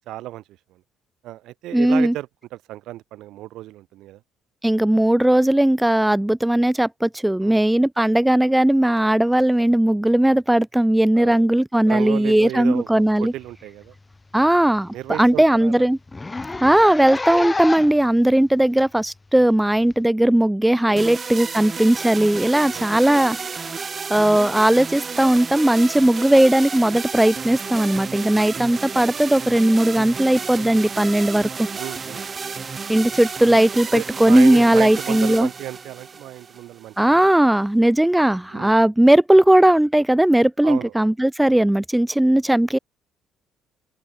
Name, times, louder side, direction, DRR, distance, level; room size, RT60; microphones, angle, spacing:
voice 1, 0.1-0.4 0.7-0.8 1.2-4.2 7.4-7.6 11.1-11.5 11.9-13.9 14.9-15.9 20.9-21.1 22.6-22.9 31.7-32.2 33.9-37.3 38.5-38.8 40.6-41.1, right 15 dB, 75° right, 2.7 m, -33 dB
voice 2, 1.7-2.1 4.6-13.3 14.3-16.0 16.6-23.4 24.1-31.7 32.9-35.5 37.0-42.8, right 1 dB, 5° right, 0.4 m, -17 dB
Zipper (clothing), 13.4-13.6 14.0-14.1 14.4-14.5 14.9-15.0 15.2-15.4 16.1-18.0 18.8-18.9 19.9-20.0, left 3 dB, 15° left, 2.0 m, -29 dB
sound 1, 21.0-37.0, right 5 dB, 30° right, 2.5 m, -32 dB
open air
cardioid pair, 110°, 0 cm